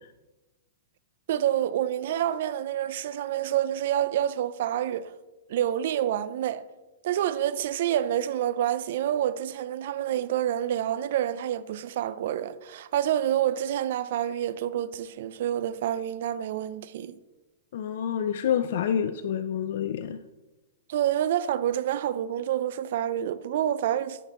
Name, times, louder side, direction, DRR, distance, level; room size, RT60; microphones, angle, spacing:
voice 1, 1.3-5.1 5.5-6.6 7.0-17.2 20.9-24.2, right 11 dB, 60° right, 0.4 m, -28 dB
voice 2, 17.7-20.2, left 9 dB, 65° left, 0.4 m, -28 dB
9.8 x 5.9 x 3.0 m
hypercardioid pair, 135°, 0 cm